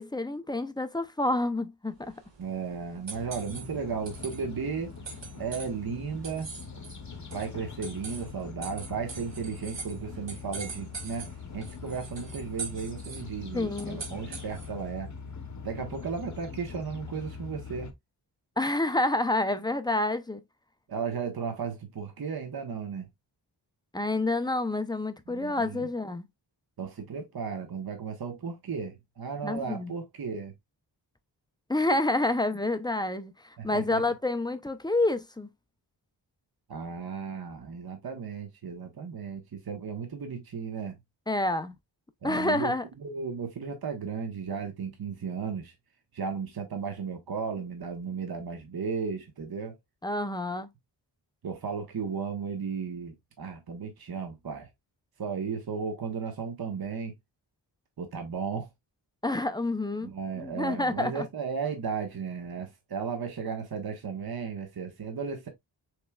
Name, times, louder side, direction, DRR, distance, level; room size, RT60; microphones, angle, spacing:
voice 1, 0.0-2.2 13.5-14.0 18.6-20.4 23.9-26.3 29.4-29.9 31.7-35.5 41.3-41.7 42.2-42.8 50.0-50.7 59.2-61.3, left 2 dB, 10° left, 0.5 m, -28 dB
sound 1, 2.0-14.9, right 4 dB, 70° right, 1.7 m, -44 dB
voice 2, 2.4-4.9 5.4-6.5 7.3-11.3 11.5-15.1 15.6-17.9 20.9-23.1 25.3-25.9 26.8-30.5 33.6-34.0 36.7-40.9 42.2-42.7 43.0-45.7 46.1-49.8 51.4-54.7 55.2-57.1 58.0-58.7 60.0-65.5, right 5 dB, 55° right, 1.1 m, -35 dB
sound 2, 3.1-17.9, left 5 dB, 40° left, 0.9 m, -43 dB
6.3 x 3.3 x 2.3 m
wide cardioid pair, 125°, 45 cm